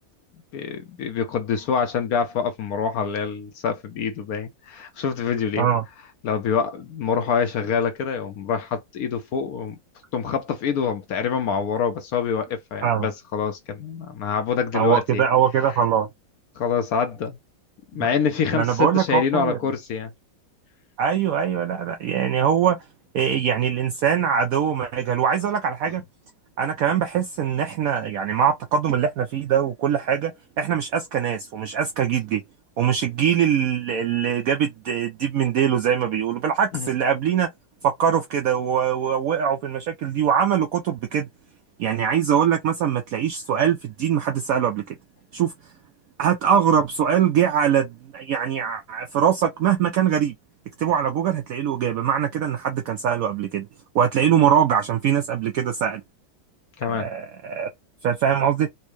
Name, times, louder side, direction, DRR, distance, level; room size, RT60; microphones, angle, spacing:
voice 1, 0.5-5.7 6.2-9.8 10.1-15.2 16.6-17.4 17.9-20.1 36.7-36.9 56.8-57.1, left 6 dB, 70° left, 0.9 m, -25 dB
voice 2, 14.7-16.1 18.0-18.1 18.5-19.6 21.0-22.8 23.1-26.0 26.6-30.3 30.6-32.4 32.8-37.5 37.8-41.3 41.8-44.9 45.3-45.5 46.2-50.3 50.8-53.7 53.9-56.0 56.9-57.7 58.0-58.7, right 8 dB, 75° right, 0.8 m, -22 dB
4.3 x 2.1 x 3.1 m
omnidirectional pair, 2.0 m